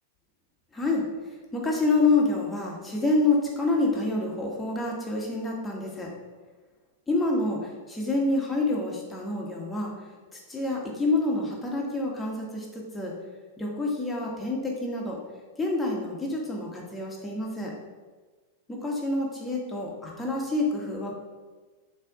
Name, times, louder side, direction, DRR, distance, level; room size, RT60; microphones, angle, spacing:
voice 1, 0.7-1.0 1.5-6.1 7.1-7.6 7.9-9.9 10.3-13.1 13.6-15.2 15.6-17.7 18.7-21.2, left 2 dB, 10° left, -2 dB, 1.5 m, -27 dB
6.5 x 3.4 x 4.9 m, 1.3 s
hypercardioid pair, 125°, 0 cm